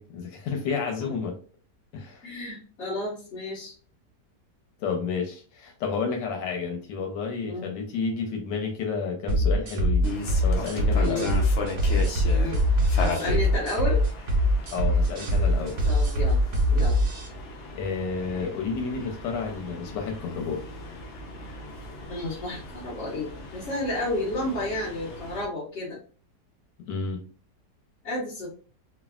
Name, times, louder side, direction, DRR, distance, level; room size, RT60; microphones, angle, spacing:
voice 1, 0.0-1.4 1.9-2.3 4.8-10.1 10.4-11.3 14.7-15.8 17.7-20.6 26.9-27.2, left 5 dB, 85° left, 3 dB, 1.3 m, -31 dB
voice 2, 2.2-3.7 7.4-7.7 11.0-11.3 12.3-12.6 13.0-14.0 15.8-16.4 16.6-17.0 22.1-26.0 28.0-28.5, left 1 dB, 45° left, -9 dB, 1.2 m, -31 dB
sound 1, 9.3-17.3, equal, 60° right, 0.6 m, -23 dB
sound 2, 10.0-25.5, left 3 dB, 70° left, 0.7 m, -37 dB
3.3 x 2.3 x 2.3 m, 0.39 s
omnidirectional pair, 1.9 m